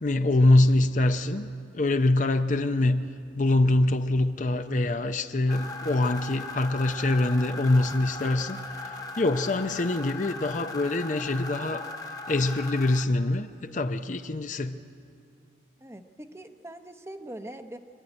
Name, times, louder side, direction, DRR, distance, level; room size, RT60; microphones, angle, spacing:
voice 1, 0.0-3.1 3.4-11.9 12.3-14.8, left 2 dB, 45° left, 0.6 m, -24 dB
sound 1, 5.5-13.0, left 3 dB, 20° left, 1.0 m, -38 dB
voice 2, 15.8-17.8, right 1 dB, 15° right, 0.8 m, -42 dB
26.0 x 12.0 x 10.0 m
head